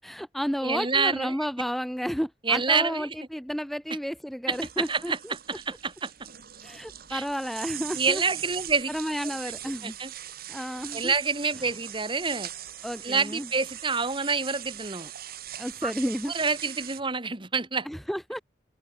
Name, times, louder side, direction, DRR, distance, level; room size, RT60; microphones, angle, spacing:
voice 1, 0.0-5.3 6.6-8.2 8.9-9.9 10.5-11.1 12.8-13.5 15.6-16.3 17.9-18.4, equal, ahead, 0.7 m, -32 dB
voice 2, 0.6-1.4 2.4-3.1 4.5-6.1 7.1-7.2 7.9-8.9 9.8-10.1 10.9-12.5 13.0-15.1 15.8-15.9 16.3-17.9, right 4 dB, 30° right, 2.0 m, -27 dB
sound 1, 4.5-17.0, right 12 dB, 55° right, 2.7 m, -41 dB
head